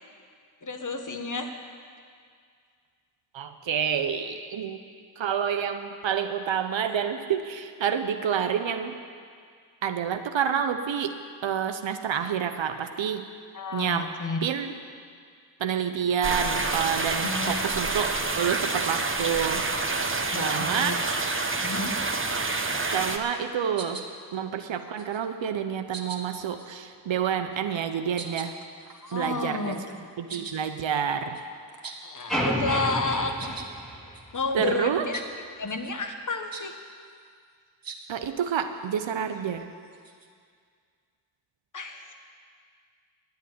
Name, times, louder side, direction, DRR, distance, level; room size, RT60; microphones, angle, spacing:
voice 1, 0.6-1.5 13.5-14.4 17.2-17.7 20.2-21.2 21.6-21.9 29.0-29.8 32.0-33.5 34.1-35.2 35.6-36.8 41.7-42.1, left 3 dB, 40° left, 6 dB, 1.5 m, -31 dB
voice 2, 3.3-4.8 5.2-8.9 9.8-13.2 13.7-14.1 14.4-14.7 15.6-19.7 20.1-21.0 22.4-22.5 22.9-24.0 24.3-28.5 29.1-29.8 30.2-31.4 34.5-35.1 38.1-39.7, right 8 dB, 75° right, 7 dB, 0.9 m, -28 dB
sound 1, 16.2-23.2, right 3 dB, 25° right, 1.3 m, -28 dB
sound 2, 23.2-23.5 23.8-24.3 24.8-25.3 25.9-26.7 27.5-27.7 28.1-32.4 32.7-33.7 34.1-34.5 35.1-35.3 35.7-35.9 36.5-36.7 37.8-38.1 38.7-40.3, right 4 dB, 45° right, 1.5 m, -43 dB
sound 3, 32.3-34.6, equal, ahead, 2.5 m, -30 dB
11.5 x 8.1 x 9.4 m, 2.1 s
cardioid pair, 50°, 46 cm